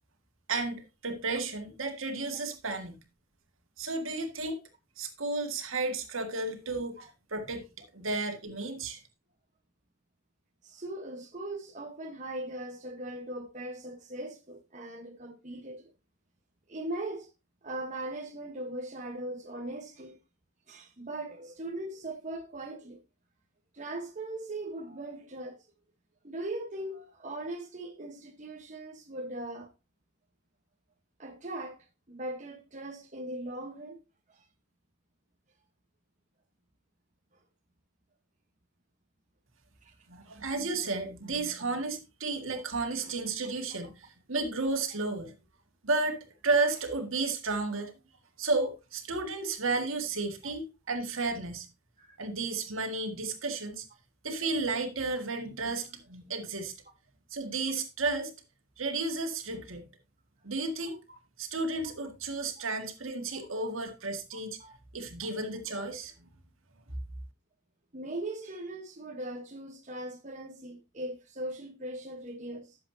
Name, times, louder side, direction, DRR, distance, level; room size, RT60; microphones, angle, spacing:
voice 1, 0.5-3.0 3.8-4.6 5.0-7.0 7.3-7.7 7.9-9.0 40.1-45.3 45.8-47.9 48.4-51.7 52.2-53.9 54.2-56.7 57.3-58.3 58.8-59.9 60.4-61.0 61.4-64.6 64.9-66.3, right 3 dB, 75° right, 2.0 m, -32 dB
voice 2, 10.6-15.9 16.7-17.3 17.6-20.2 20.7-23.0 23.7-25.6 26.2-29.7 31.2-34.0 34.3-34.4 39.8-40.0 50.4-50.5 52.0-52.2 61.1-61.2 64.3-64.7 67.9-72.8, right 1 dB, 35° right, 1.2 m, -39 dB
11.5 x 7.6 x 2.8 m
head